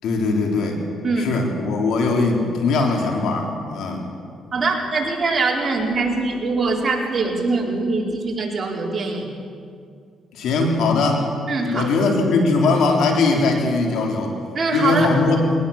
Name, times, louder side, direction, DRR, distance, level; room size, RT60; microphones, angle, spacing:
voice 1, 0.0-0.9 1.2-4.1 10.3-11.3 11.6-14.3 14.7-15.5, left 3 dB, 80° left, 2 dB, 3.7 m, -20 dB
voice 2, 1.0-1.4 4.5-9.3 11.5-11.9 14.5-15.1, right 3 dB, 35° right, -1 dB, 4.4 m, -22 dB
21.5 x 19.0 x 7.3 m, 2.3 s
cardioid pair, 90°, 0 cm